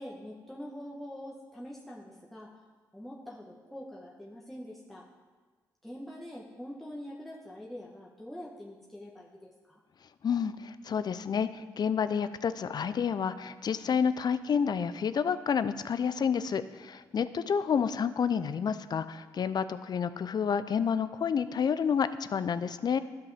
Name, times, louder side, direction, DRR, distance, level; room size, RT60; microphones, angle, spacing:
voice 1, 0.0-2.6 2.9-5.0 5.8-9.8, equal, ahead, -5 dB, 1.3 m, -44 dB
voice 2, 10.2-23.0, left 7 dB, 50° left, 13 dB, 0.5 m, -29 dB
12.5 x 5.5 x 3.5 m, 1.4 s
hypercardioid pair, 45°, 9 cm